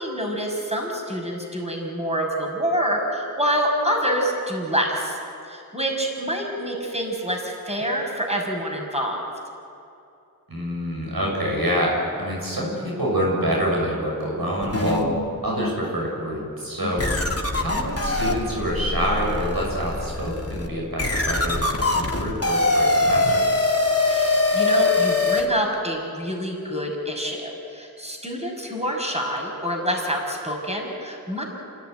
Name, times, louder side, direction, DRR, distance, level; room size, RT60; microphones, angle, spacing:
voice 1, 0.0-5.2 5.4-9.3 16.8-17.2 24.1-31.4, equal, 20° right, 0 dB, 6.1 m, -27 dB
voice 2, 10.5-15.1 15.4-17.0 17.5-23.5, equal, 90° right, -3 dB, 7.1 m, -26 dB
sound 1, 14.6-15.8 16.3-16.5 17.0-25.5, left 2 dB, 40° left, 2.6 m, -23 dB
27.5 x 17.5 x 9.3 m, 2.6 s
wide cardioid pair, 40°, 35 cm